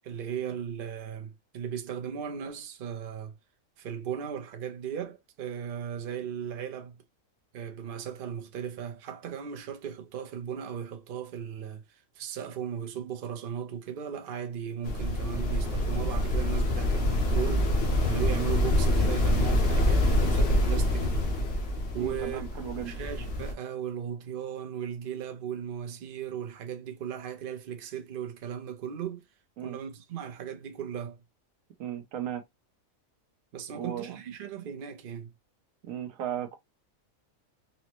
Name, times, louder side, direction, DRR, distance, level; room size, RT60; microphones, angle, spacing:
voice 1, 0.0-3.3 3.8-7.0 7.5-17.7 18.0-21.3 21.9-22.4 22.7-29.2 29.6-31.2 33.5-35.3, right 8 dB, 50° right, 0.7 m, -37 dB
sound 1, 14.8-23.5, left 1 dB, 50° left, 0.9 m, -26 dB
voice 2, 22.0-23.0 29.6-29.8 31.8-32.4 33.7-34.2 35.8-36.6, right 9 dB, 75° right, 1.1 m, -36 dB
4.1 x 2.0 x 2.8 m
omnidirectional pair, 1.4 m